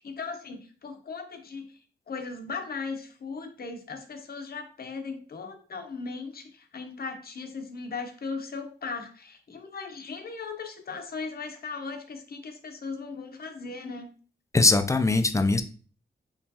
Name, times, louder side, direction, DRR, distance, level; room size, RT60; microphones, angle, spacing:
voice 1, 0.0-1.8 2.1-14.1, left 4 dB, 55° left, 5 dB, 0.7 m, -38 dB
voice 2, 14.5-15.6, left 3 dB, 15° left, 9 dB, 0.4 m, -21 dB
4.4 x 3.0 x 2.8 m, 0.40 s
wide cardioid pair, 120°, 19 cm